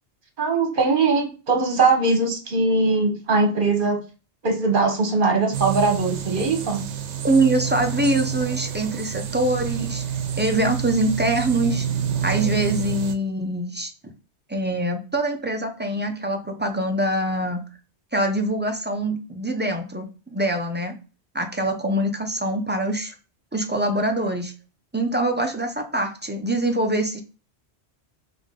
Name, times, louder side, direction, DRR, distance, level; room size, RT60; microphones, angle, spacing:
voice 1, 0.4-4.0 4.4-6.8, right 3 dB, 50° right, 3 dB, 1.3 m, -21 dB
sound 1, 5.5-13.1, right 8 dB, 80° right, 0.9 m, -28 dB
voice 2, 7.2-10.0 10.4-11.9 12.2-13.9 14.5-17.6 18.1-21.0 21.3-23.1 23.5-24.5 24.9-27.2, right 1 dB, 15° right, 4 dB, 0.4 m, -24 dB
3.8 x 3.6 x 3.7 m, 0.34 s
omnidirectional pair, 1.2 m